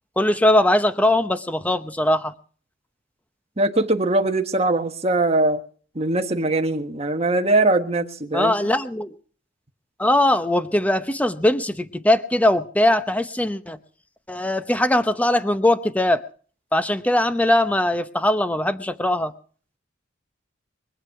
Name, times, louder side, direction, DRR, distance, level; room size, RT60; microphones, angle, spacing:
voice 1, 0.2-2.3 8.3-9.1 10.0-13.8 14.3-16.2 16.7-19.3, left 1 dB, 10° left, 0.8 m, -20 dB
voice 2, 3.6-5.6 5.9-8.6, right 2 dB, 30° right, 1.4 m, -21 dB
23.5 x 8.2 x 5.9 m
head